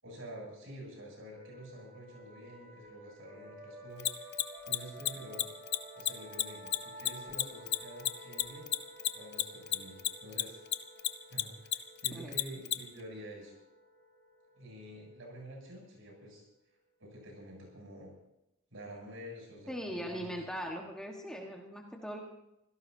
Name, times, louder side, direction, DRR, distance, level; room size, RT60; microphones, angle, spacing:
voice 1, 0.0-5.5 5.9-8.7 9.1-10.6 11.3-13.5 14.5-16.4 17.0-18.1 18.7-20.4, equal, 65° right, -1 dB, 7.9 m, -48 dB
sound 1, 1.3-16.7, equal, 25° right, 8.0 m, -52 dB
Mechanisms, 4.0-10.7 11.0-12.7, left 12 dB, 50° left, 0.8 m, -30 dB
voice 2, 19.7-22.2, equal, 5° left, 0 dB, 1.5 m, -40 dB
25.5 x 17.0 x 2.8 m, 0.87 s
head